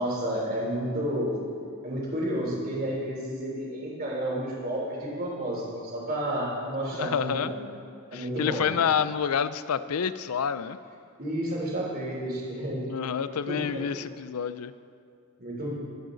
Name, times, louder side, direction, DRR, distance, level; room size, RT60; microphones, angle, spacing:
voice 1, 0.0-1.3 1.8-7.6 8.1-8.7 11.2-12.8 13.2-13.8 15.4-15.7, right 1 dB, 45° right, -4 dB, 3.5 m, -31 dB
voice 2, 6.9-7.5 8.1-10.8 12.9-14.7, left 7 dB, 85° left, 14 dB, 0.5 m, -28 dB
22.5 x 8.9 x 3.9 m, 2.3 s
head